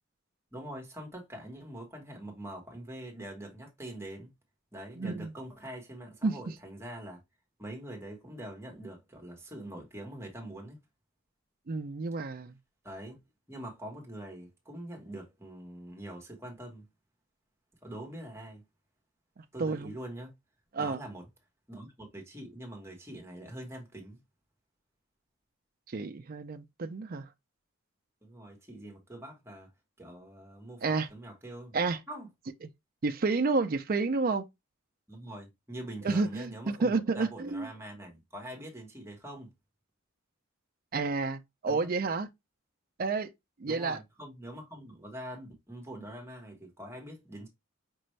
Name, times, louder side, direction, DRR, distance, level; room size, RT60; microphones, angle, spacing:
voice 1, 0.5-4.3 4.7-7.2 7.6-10.8 12.8-13.2 13.5-16.9 17.8-18.6 19.5-20.3 20.8-21.2 21.7-24.2 28.2-29.7 30.0-30.8 31.1-31.7 32.1-32.3 35.1-39.5 41.6-41.8 43.6-47.5, right 1 dB, 10° right, 1.2 m, -44 dB
voice 2, 5.0-5.3 6.2-6.4 11.7-12.6 19.4-19.9 20.7-21.0 25.9-27.3 30.8-31.1 31.7-32.0 33.0-34.5 36.0-37.7 40.9-42.3 43.0-43.3 43.6-44.0, right 4 dB, 45° right, 0.5 m, -30 dB
5.3 x 2.5 x 3.2 m
head